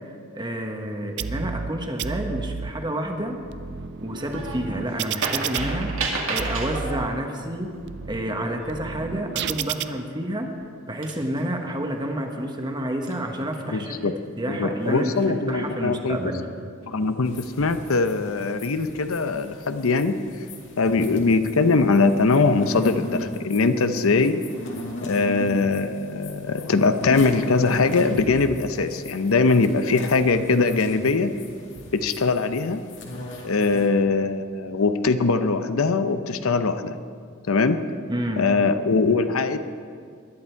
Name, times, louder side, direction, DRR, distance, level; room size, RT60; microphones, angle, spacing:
voice 1, 0.3-3.4 4.0-5.9 6.3-7.7 8.1-10.5 10.9-16.4 33.7-33.8 38.1-38.5, right 1 dB, 20° right, 3 dB, 1.3 m, -29 dB
sound 1, 1.2-1.7 2.0-2.7 3.3-6.1 6.4-7.1 7.6-9.8, right 6 dB, 55° right, 0.5 m, -32 dB
sound 2, 4.2-4.7 5.0-7.0 9.7-9.9 10.5-10.6 11.0-11.6 13.1-13.8 14.9-15.5 16.0-16.2, right 3 dB, 75° right, 2.2 m, -31 dB
voice 2, 13.7-14.1 14.5-16.2 16.9-20.2 20.8-24.5 25.0-31.3 31.9-32.8 33.4-37.0 37.5-37.8 38.4-39.6, left 3 dB, 85° left, 10 dB, 0.7 m, -21 dB
sound 3, 17.3-33.9, left 1 dB, 60° left, 2.2 m, -37 dB
20.5 x 11.0 x 4.6 m, 2.2 s
head